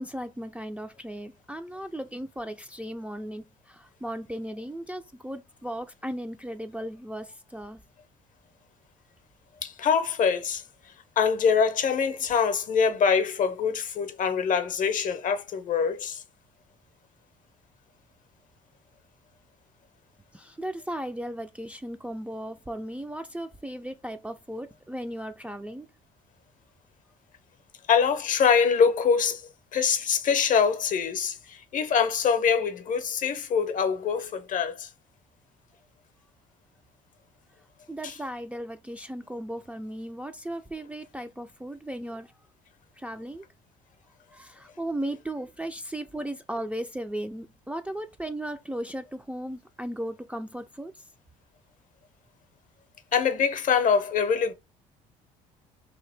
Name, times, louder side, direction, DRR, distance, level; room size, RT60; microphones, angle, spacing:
voice 1, 0.0-7.8 20.3-25.9 37.9-42.3 43.0-43.4 44.3-51.0, right 1 dB, 5° right, 0.4 m, -36 dB
voice 2, 9.6-10.6 11.2-16.2 27.9-29.4 29.7-34.9 53.1-54.5, left 6 dB, 50° left, 0.7 m, -24 dB
2.8 x 2.5 x 3.3 m
hypercardioid pair, 60°, 18 cm